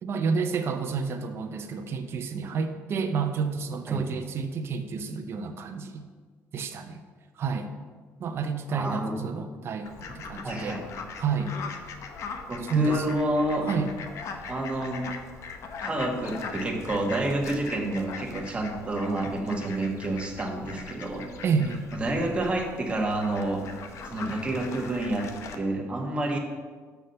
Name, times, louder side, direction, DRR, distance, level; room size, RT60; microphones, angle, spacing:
voice 1, 0.0-6.0 6.5-7.0 7.4-7.7 8.2-10.8 11.2-11.6 12.6-13.1 13.7-13.9 21.4-21.8, right 5 dB, 45° right, 6 dB, 0.7 m, -29 dB
voice 2, 8.7-9.1 10.4-10.8 12.5-13.6 14.5-15.1 15.8-21.3 21.9-23.6 24.0-25.3 25.5-26.4, right 1 dB, 20° right, 1 dB, 1.4 m, -29 dB
Fowl, 9.9-25.6, left 5 dB, 60° left, 0.8 m, -41 dB
6.3 x 5.7 x 6.5 m, 1.5 s
cardioid pair, 120°, 6 cm